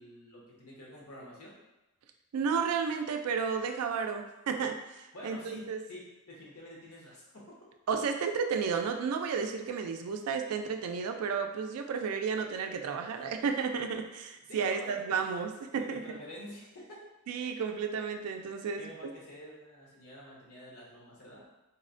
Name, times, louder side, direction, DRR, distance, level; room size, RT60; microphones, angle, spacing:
voice 1, 0.0-1.5 5.1-7.6 14.5-15.2 15.7-17.0 18.8-21.5, equal, 80° left, -4 dB, 0.9 m, -48 dB
voice 2, 2.3-5.8 7.9-16.0 17.3-18.9, right 6 dB, 75° right, 5 dB, 0.3 m, -32 dB
4.0 x 2.1 x 2.5 m, 0.99 s
head